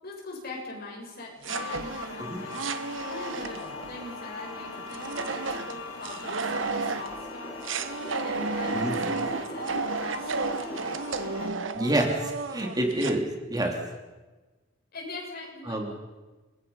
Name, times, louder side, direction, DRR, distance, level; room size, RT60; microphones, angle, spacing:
voice 1, 0.0-2.5 3.1-7.5 7.8-11.5 14.9-15.9, left 2 dB, 55° left, -1 dB, 7.4 m, -42 dB
sound 1, 1.4-3.9 4.9-7.2 7.6-13.2, right 4 dB, 80° right, 1.3 m, -32 dB
sound 2, 1.5-11.5, left 4 dB, 85° left, 2.7 m, -41 dB
sound 3, 3.4-11.4, equal, 25° left, 4.6 m, -43 dB
voice 2, 11.7-13.8 15.7-15.9, right 1 dB, 20° right, 1 dB, 3.1 m, -28 dB
29.0 x 22.5 x 5.6 m, 1.2 s
head